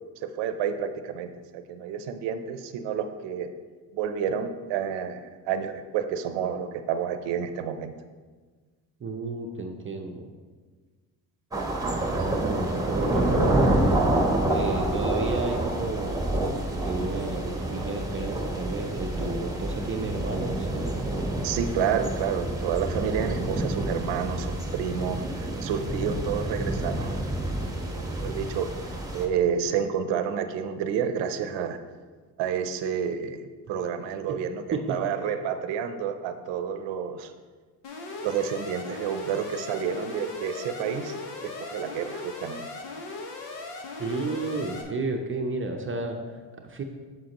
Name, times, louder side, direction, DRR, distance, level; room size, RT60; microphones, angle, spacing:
voice 1, 0.4-3.5 3.9-7.9 21.4-27.2 27.9-28.7 29.1-31.8 32.4-37.3 38.2-41.1 41.4-42.7, right 7 dB, 85° right, 9 dB, 0.7 m, -29 dB
voice 2, 9.0-10.3 11.9-13.7 14.5-16.5 16.8-21.1 34.3-34.4 34.7-35.0 44.0-46.2 46.6-46.8, right 3 dB, 30° right, 3 dB, 0.6 m, -32 dB
sound 1, 11.5-29.3, right 1 dB, 10° right, 1.1 m, -28 dB
Alarm, 37.8-44.8, left 3 dB, 80° left, 1.4 m, -38 dB
7.6 x 7.5 x 3.0 m, 1.4 s
cardioid pair, 95°, 42 cm